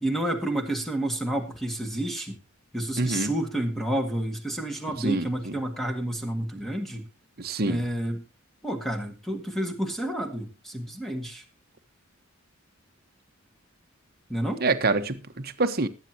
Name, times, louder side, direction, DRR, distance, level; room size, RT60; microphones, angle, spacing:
voice 1, 0.0-2.4 2.7-7.1 7.6-8.2 8.6-11.4 14.3-14.6, right 1 dB, ahead, 1.9 m, -30 dB
voice 2, 3.0-3.3 5.0-5.3 7.4-7.8 14.6-15.9, right 3 dB, 45° right, 1.1 m, -26 dB
20.5 x 9.2 x 2.9 m
head